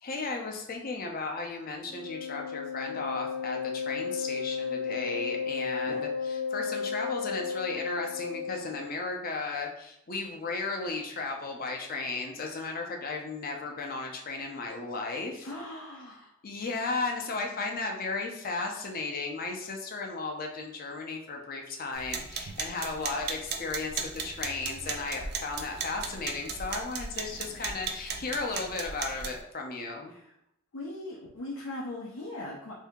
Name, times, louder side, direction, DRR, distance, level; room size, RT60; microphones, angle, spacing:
voice 1, 0.0-15.5 16.4-30.1, left 3 dB, 45° left, 2 dB, 0.5 m, -35 dB
Wind instrument woodwind instrument, 1.9-8.9, left 5 dB, 30° left, 1.0 m, -34 dB
voice 2, 15.4-16.3 27.3-27.8 30.1-30.3 30.7-32.7, left 2 dB, 90° left, -3 dB, 0.6 m, -40 dB
sound 1, 21.9-29.4, right 5 dB, 50° right, 0.4 m, -37 dB
2.7 x 2.7 x 3.5 m, 0.81 s
head